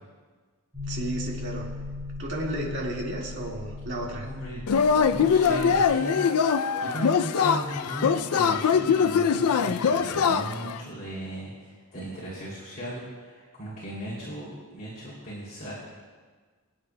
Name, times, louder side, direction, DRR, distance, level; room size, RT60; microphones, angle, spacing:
sound 1, 0.7-5.9, left 2 dB, 30° right, 3.3 m, -37 dB
voice 1, 0.9-1.7 2.2-4.3, right 1 dB, 55° right, -2 dB, 1.9 m, -32 dB
voice 2, 4.2-6.2 6.8-15.7, right 1 dB, 40° left, -8 dB, 2.9 m, -37 dB
Yell / Cheering, 4.7-10.8, left 6 dB, 85° left, 0.4 m, -23 dB
24.5 x 8.8 x 2.2 m, 1.5 s
head